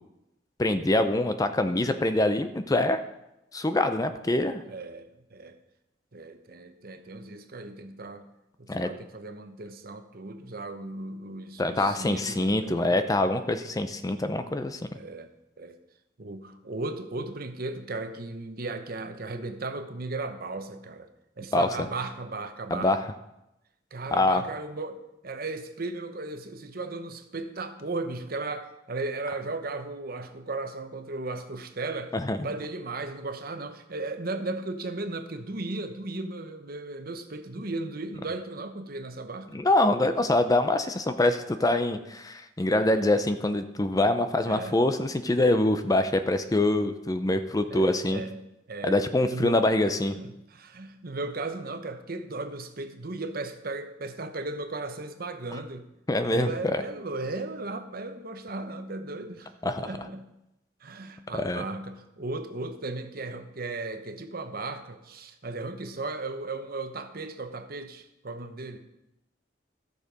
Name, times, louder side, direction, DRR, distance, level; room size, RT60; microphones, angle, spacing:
voice 1, 0.6-3.0 3.5-4.6 8.7-8.9 11.6-14.8 21.5-21.7 22.7-23.0 24.1-24.4 32.1-32.4 39.5-48.2 48.8-50.2 56.1-56.8 59.6-59.9 61.3-61.6, left 2 dB, 20° left, 9 dB, 0.5 m, -24 dB
voice 2, 4.6-5.6 6.1-8.3 8.6-13.0 14.9-15.3 15.6-15.8 16.2-21.1 21.4-22.9 23.9-32.2 32.4-39.5 44.4-44.8 47.7-48.4 48.7-49.0 49.3-49.7 50.2-55.9 56.3-59.5 59.8-60.3 60.8-68.8, right 2 dB, 50° right, 8 dB, 1.0 m, -36 dB
14.0 x 6.7 x 5.2 m, 0.89 s
head